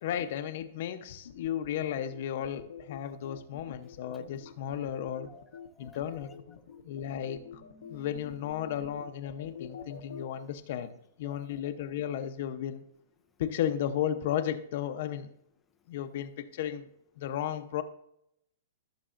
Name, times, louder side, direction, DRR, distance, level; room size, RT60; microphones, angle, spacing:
voice 1, 0.0-5.3 5.8-6.4 6.8-7.4 7.9-12.8 13.4-15.3 15.9-16.9 17.2-17.8, left 10 dB, 55° left, 10 dB, 0.8 m, -34 dB
sound 1, 1.2-10.2, left 8 dB, 85° left, 1.1 m, -47 dB
voice 2, 5.3-6.3 6.7-6.8 7.3-8.8 9.6-10.2 11.2-11.5, left 3 dB, 10° left, 4 dB, 0.5 m, -56 dB
15.5 x 6.8 x 2.6 m, 0.76 s
hypercardioid pair, 150°, 0 cm